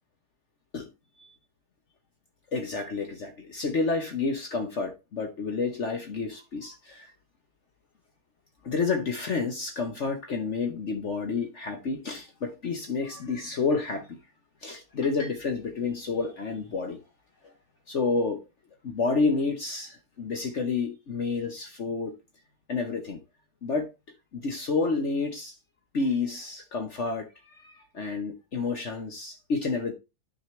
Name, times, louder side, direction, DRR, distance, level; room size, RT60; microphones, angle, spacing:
voice 1, 2.5-7.0 8.6-14.2 14.6-17.0 17.9-18.4 18.8-22.1 22.7-23.2 23.6-23.9 24.3-25.5 25.9-27.3 27.9-29.9, left 4 dB, 50° left, 1.2 m, -29 dB
10.0 x 6.3 x 3.2 m
omnidirectional pair, 1.7 m